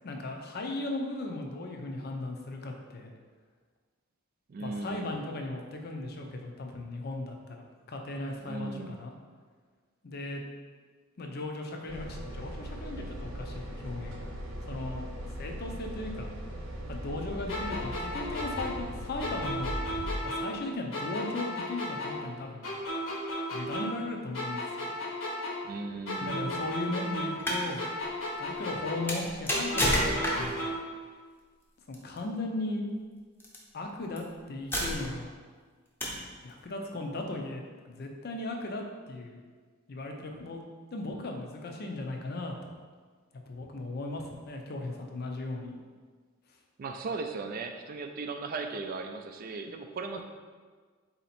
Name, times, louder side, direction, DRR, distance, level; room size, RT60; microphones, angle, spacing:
voice 1, 0.0-3.1 4.6-9.1 10.0-10.4 11.2-14.3 14.7-15.1 15.4-16.3 16.9-19.9 20.2-22.7 23.5-24.9 26.2-27.8 28.4-30.7 31.9-32.9 33.7-35.4 36.4-39.4 39.9-40.6 40.9-42.5 43.5-45.8, left 2 dB, 55° left, 2 dB, 0.5 m, -37 dB
voice 2, 4.5-5.2 8.4-9.0 25.6-26.7 46.8-50.2, right 3 dB, 45° right, 5 dB, 0.4 m, -37 dB
sound 1, 11.9-20.1, equal, 70° right, 0.7 m, -39 dB
sound 2, 17.5-20.6 20.9-24.1 24.3-27.5 27.8-30.9, left 1 dB, 80° left, 1.1 m, -35 dB
sound 3, 27.3-27.7 29.1-30.6 31.9-32.2 33.4-33.6 34.2-34.3 34.7-35.3 36.0-36.3, equal, 10° left, 0.7 m, -29 dB
4.1 x 2.8 x 4.2 m, 1.5 s
head